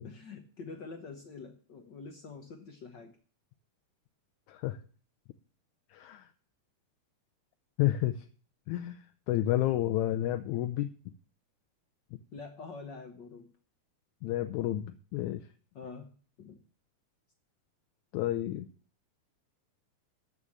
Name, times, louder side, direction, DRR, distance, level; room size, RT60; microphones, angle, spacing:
voice 1, 0.0-3.1 12.3-13.5 15.7-16.6, left 4 dB, 65° left, 5 dB, 1.1 m, -46 dB
voice 2, 5.9-6.3 7.8-8.3 8.7-10.9 14.2-15.4 18.1-18.7, left 14 dB, 80° left, 9 dB, 2.0 m, -30 dB
12.5 x 5.5 x 7.2 m, 0.42 s
omnidirectional pair, 3.4 m